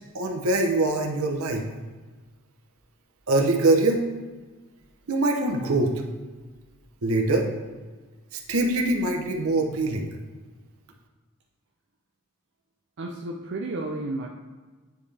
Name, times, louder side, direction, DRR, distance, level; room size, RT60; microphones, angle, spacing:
voice 1, 0.1-1.6 3.3-4.0 5.1-5.9 7.0-7.5 8.3-10.1, right 2 dB, 80° right, 2 dB, 0.8 m, -23 dB
voice 2, 13.0-14.3, right 2 dB, 55° right, 0 dB, 0.5 m, -32 dB
9.3 x 3.4 x 3.3 m, 1.3 s
head